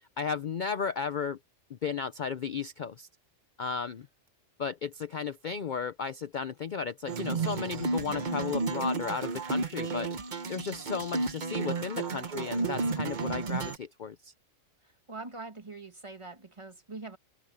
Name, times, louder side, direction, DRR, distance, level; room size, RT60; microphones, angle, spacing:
voice 1, 0.0-1.4 1.7-3.1 3.6-4.1 4.6-14.3, left 6 dB, 50° left, 0.6 m, -34 dB
sound 1, 7.1-13.8, right 3 dB, 40° right, 1.0 m, -32 dB
voice 2, 15.1-17.2, right 3 dB, 25° right, 1.4 m, -43 dB
open air
omnidirectional pair, 1.3 m